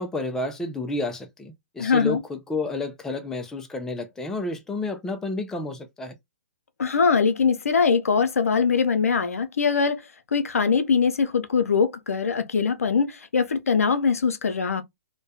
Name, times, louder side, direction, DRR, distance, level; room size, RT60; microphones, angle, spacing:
voice 1, 0.0-6.2, left 2 dB, 5° left, 0.3 m, -30 dB
voice 2, 1.8-2.2 6.8-10.0 10.3-14.8, left 5 dB, 90° left, 0.5 m, -22 dB
2.2 x 2.1 x 2.6 m
hypercardioid pair, 135°, 8 cm